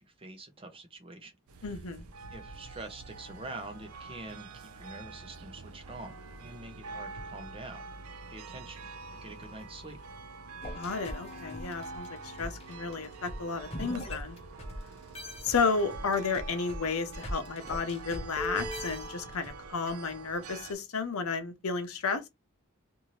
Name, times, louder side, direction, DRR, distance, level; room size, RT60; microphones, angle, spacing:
voice 1, 0.0-1.8 2.3-6.1 6.4-7.9 8.3-8.9 9.2-10.0, right 2 dB, 25° right, 0.6 m, -45 dB
sound 1, 1.5-20.7, right 4 dB, 90° right, 0.5 m, -45 dB
voice 2, 1.6-2.1 10.7-14.4 15.4-22.3, left 4 dB, 85° left, 0.7 m, -32 dB
sound 2, 10.6-14.8 15.1-19.5, equal, 30° left, 0.7 m, -41 dB
2.6 x 2.6 x 3.0 m
head